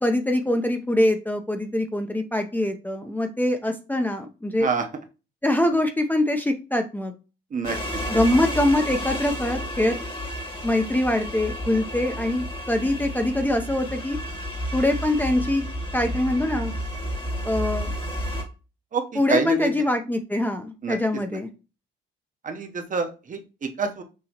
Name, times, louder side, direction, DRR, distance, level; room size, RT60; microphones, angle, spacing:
voice 1, 0.0-4.7 5.4-7.1 8.1-10.0 10.6-14.2 14.7-15.6 15.9-16.7 17.4-17.9 19.2-21.5, left 1 dB, 10° left, 5 dB, 0.5 m, -23 dB
sound 1, 7.6-18.4, equal, 25° left, 1.2 m, -31 dB
voice 2, 19.3-19.7 20.8-21.0 22.4-24.0, right 5 dB, 40° right, 6 dB, 0.8 m, -26 dB
6.3 x 2.8 x 2.9 m, 0.32 s
cardioid pair, 90°, 20 cm